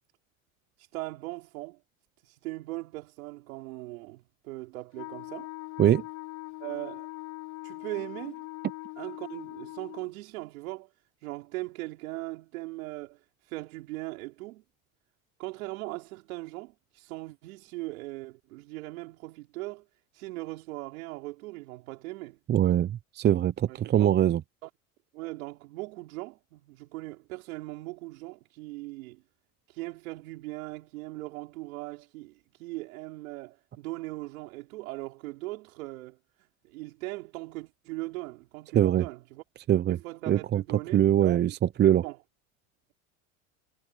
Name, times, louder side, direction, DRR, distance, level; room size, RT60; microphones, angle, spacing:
voice 1, 0.8-1.8 2.2-5.5 6.6-7.1 7.6-8.5 9.0-10.9 11.2-14.6 15.4-22.4 23.7-24.1 24.6-24.7 25.1-29.2 29.7-39.4 39.9-41.6 42.0-42.2, right 21 dB, 80° right, 3.6 m, -39 dB
Wind instrument woodwind instrument, 4.9-10.1, left 34 dB, 75° left, 1.1 m, -41 dB
voice 2, 22.5-24.4 38.7-39.0 39.7-40.0 40.3-40.6 40.9-41.5 41.8-42.0, right 11 dB, 25° right, 0.6 m, -22 dB
supercardioid pair, 100°, 41 cm